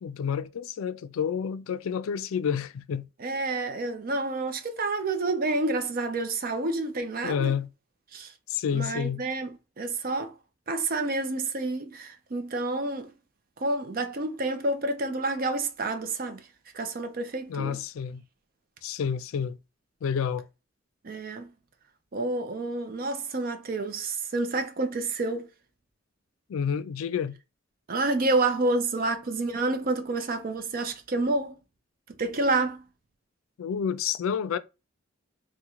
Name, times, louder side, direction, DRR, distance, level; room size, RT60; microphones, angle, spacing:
voice 1, 0.0-3.0 7.2-7.7 8.5-9.2 17.5-18.2 18.8-19.6 20.0-20.5 26.5-27.3 33.6-34.6, left 7 dB, 90° left, 0.3 m, -29 dB
voice 2, 3.2-7.5 8.1-8.3 8.7-10.3 10.7-13.1 13.6-16.4 16.7-17.8 21.0-21.5 22.1-25.5 27.9-31.6 32.1-32.8, right 2 dB, 45° right, 0.5 m, -29 dB
3.6 x 2.1 x 2.9 m
head